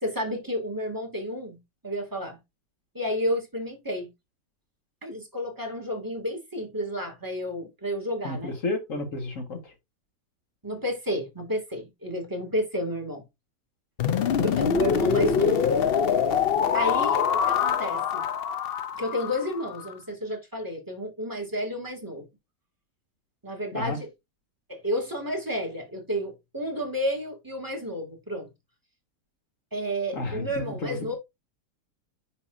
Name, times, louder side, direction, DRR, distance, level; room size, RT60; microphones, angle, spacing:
voice 1, 0.0-1.6 1.8-2.4 2.9-4.1 5.0-8.5 10.6-13.2 14.3-15.7 16.7-18.3 18.9-22.3 23.4-24.1 24.7-28.5 29.7-31.1, equal, 10° right, 2.1 m, -31 dB
voice 2, 8.2-9.7 23.7-24.0 30.1-31.1, left 2 dB, 50° left, 1.9 m, -32 dB
sound 1, 14.0-19.9, left 7 dB, 65° left, 0.5 m, -24 dB
10.0 x 4.1 x 2.6 m
omnidirectional pair, 1.8 m